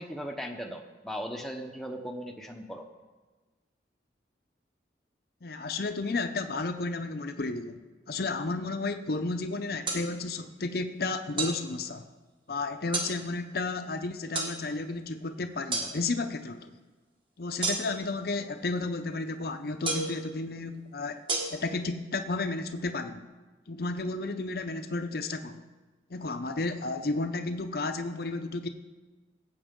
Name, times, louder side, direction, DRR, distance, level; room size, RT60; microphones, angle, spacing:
voice 1, 0.0-2.8, equal, ahead, 2 dB, 0.8 m, -38 dB
voice 2, 5.4-7.8 8.1-12.1 12.5-16.8 17.4-21.2 21.5-23.3 23.7-25.6 26.1-28.7, left 3 dB, 55° left, 8 dB, 0.6 m, -32 dB
sound 1, 9.9-10.0 11.4-11.6 12.9-13.1 14.3-14.5 15.7-15.9 17.6-18.1 19.8-20.2 21.3-21.4, right 3 dB, 30° right, 1.6 m, -29 dB
17.5 x 7.8 x 3.7 m, 1.3 s
head